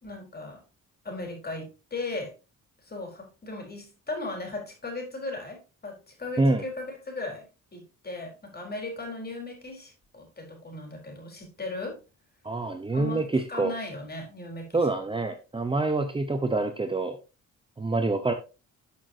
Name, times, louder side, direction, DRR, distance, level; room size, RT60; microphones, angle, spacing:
voice 1, 0.0-0.6 1.0-2.3 2.8-12.0 12.9-15.0, left 2 dB, 30° left, 1 dB, 4.2 m, -37 dB
voice 2, 12.4-13.7 14.7-17.2 17.8-18.3, right 2 dB, 15° right, 7 dB, 0.8 m, -26 dB
13.0 x 6.2 x 2.8 m, 0.30 s
cardioid pair, 110°, 31 cm